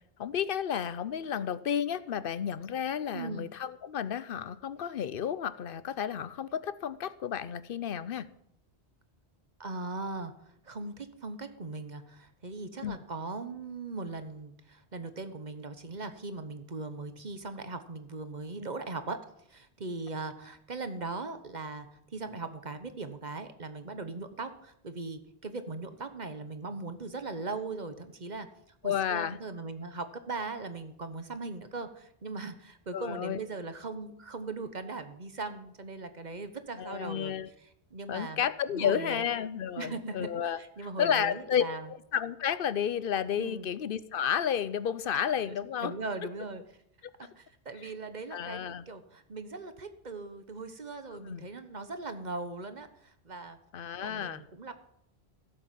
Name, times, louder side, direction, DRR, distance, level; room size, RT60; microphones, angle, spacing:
voice 1, 0.2-8.3 12.8-13.0 28.8-29.4 32.9-33.4 36.8-37.5 38.1-40.6 41.0-41.6 42.1-45.9 48.3-48.8 51.1-51.5 53.7-54.4, left 8 dB, 60° left, 16 dB, 0.8 m, -31 dB
voice 2, 3.1-3.5 9.6-19.2 19.5-28.5 28.8-37.3 37.6-38.4 38.7-39.3 39.8-40.3 40.6-41.9 43.4-43.7 45.5-46.6 47.2-53.6 53.9-54.7, right 3 dB, 45° right, 10 dB, 1.2 m, -39 dB
16.0 x 7.9 x 7.5 m, 0.75 s
omnidirectional pair, 1.1 m